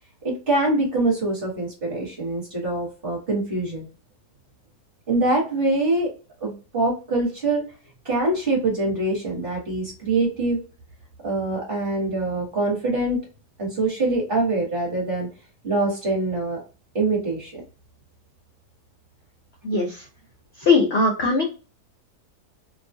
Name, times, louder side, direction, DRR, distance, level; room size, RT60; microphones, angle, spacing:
voice 1, 0.2-3.8 5.1-6.1 6.4-7.6 8.0-10.6 11.2-13.2 13.6-15.3 15.6-16.6 16.9-17.6, right 2 dB, 35° right, -3 dB, 1.4 m, -24 dB
voice 2, 19.6-20.0 20.6-21.4, left 3 dB, 60° left, 1 dB, 0.6 m, -20 dB
2.9 x 2.3 x 2.6 m, 0.34 s
omnidirectional pair, 1.8 m